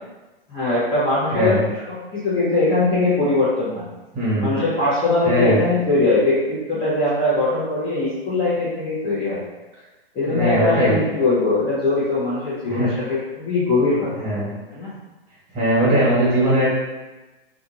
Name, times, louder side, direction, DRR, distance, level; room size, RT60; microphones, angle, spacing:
voice 1, 0.5-3.9 4.4-9.4 10.1-14.1 14.7-14.9, left 2 dB, 20° left, -10 dB, 0.9 m, -21 dB
voice 2, 1.3-1.6 4.1-4.6 5.2-5.6 10.2-11.0 12.7-12.9 14.1-14.5 15.5-16.7, right 1 dB, 25° right, -7 dB, 1.4 m, -20 dB
2.5 x 2.4 x 2.8 m, 1.1 s
figure-of-eight pair, 110°, 30 cm